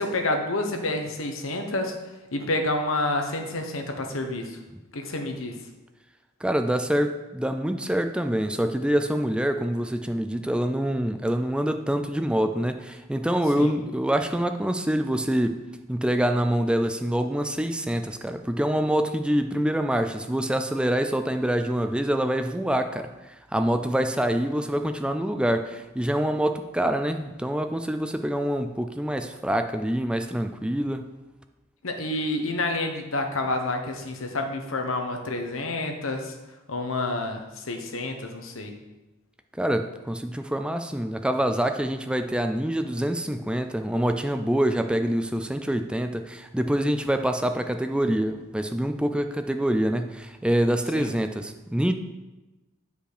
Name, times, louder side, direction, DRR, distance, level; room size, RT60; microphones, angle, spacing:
voice 1, 0.0-1.9 2.3-4.6 4.9-5.6 13.6-13.7 31.8-36.3 36.7-38.7 50.9-51.1, left 2 dB, 90° left, 4 dB, 1.2 m, -29 dB
voice 2, 6.4-15.6 15.9-23.1 23.5-31.0 39.6-51.9, right 1 dB, 5° right, 7 dB, 0.4 m, -25 dB
9.0 x 5.1 x 4.9 m, 1.1 s
head